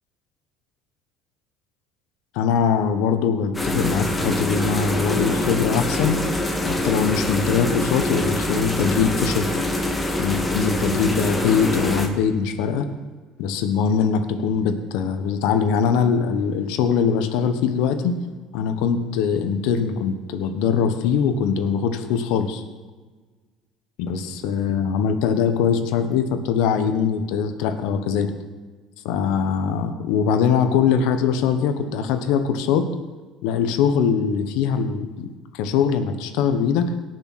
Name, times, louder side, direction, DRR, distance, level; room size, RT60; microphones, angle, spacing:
voice 1, 2.3-6.2 6.7-9.5 10.2-12.9 13.4-18.2 18.5-22.6 24.0-28.3 29.0-32.9 33.4-35.3 35.5-36.9, left 6 dB, 75° left, 8 dB, 1.3 m, -22 dB
sound 1, 3.5-12.1, left 1 dB, 15° left, 2.0 m, -24 dB
18.0 x 6.6 x 4.3 m, 1.3 s
supercardioid pair, 85°, 0 cm